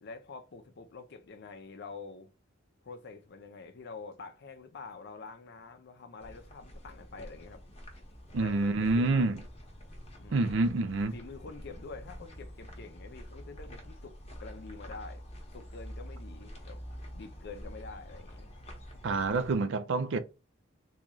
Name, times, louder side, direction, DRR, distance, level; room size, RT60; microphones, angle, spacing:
voice 1, 0.0-2.3 2.8-7.6 8.4-9.3 10.2-10.4 11.1-15.2 15.5-16.8 17.1-18.5, left 4 dB, 60° left, 0.6 m, -46 dB
sound 1, 6.2-19.6, equal, 35° left, 1.0 m, -47 dB
voice 2, 8.3-9.3 10.3-11.1 19.0-20.2, right 3 dB, 70° right, 0.4 m, -27 dB
3.8 x 2.3 x 3.0 m
head